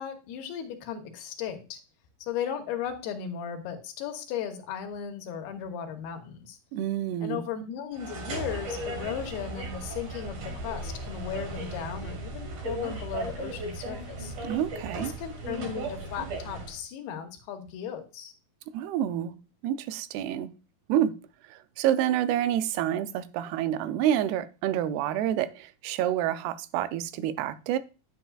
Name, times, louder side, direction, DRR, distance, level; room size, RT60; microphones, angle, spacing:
voice 1, 0.0-1.8 2.2-6.6 7.2-14.3 15.0-18.3, left 8 dB, 80° left, 2.9 m, -36 dB
voice 2, 6.7-7.4 14.4-15.1 18.7-19.4 19.6-20.5 20.9-21.1 21.5-27.8, right 11 dB, 85° right, 2.7 m, -28 dB
sound 1, 7.9-16.8, right 2 dB, 50° right, 2.3 m, -36 dB
10.5 x 8.0 x 2.4 m
omnidirectional pair, 4.6 m